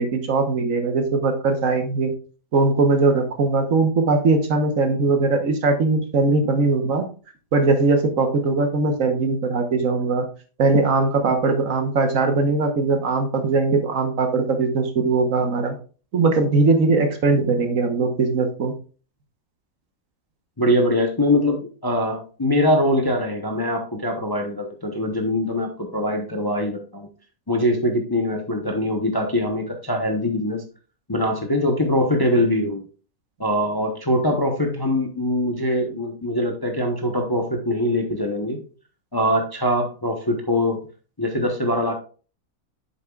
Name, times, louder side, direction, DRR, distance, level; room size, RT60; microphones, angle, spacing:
voice 1, 0.0-2.1 2.5-7.1 7.5-10.3 10.6-15.7 16.1-18.7, right 3 dB, 60° right, 6 dB, 1.4 m, -20 dB
voice 2, 20.6-27.1 27.5-30.6 31.1-32.8 33.4-38.6 39.1-40.8 41.2-42.0, left 1 dB, 20° left, 3 dB, 0.8 m, -22 dB
8.1 x 6.9 x 2.3 m, 0.37 s
omnidirectional pair, 1.6 m